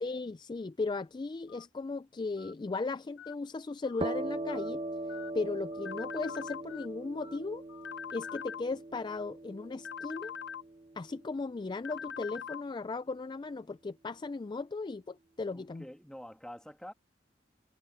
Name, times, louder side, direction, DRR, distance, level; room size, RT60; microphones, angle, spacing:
voice 1, 0.0-4.8 5.3-7.6 8.1-10.3 11.0-15.8, left 3 dB, 25° left, 0.3 m, -36 dB
Telephone, 1.5-1.6 2.4-2.5 3.2-3.3 3.8-4.1 4.5-4.7 5.1-5.3 5.7-5.9 6.2-6.4 6.7-6.9 7.2-7.4 7.7-7.9 8.2-8.4, left 8 dB, 85° left, 1.3 m, -51 dB
sound 1, 4.0-11.5, right 2 dB, 30° right, 0.7 m, -40 dB
sound 2, 5.9-6.6 7.9-8.6 9.9-10.6 11.9-12.6, left 7 dB, 70° left, 0.9 m, -41 dB
voice 2, 15.5-16.9, equal, 5° left, 2.2 m, -47 dB
head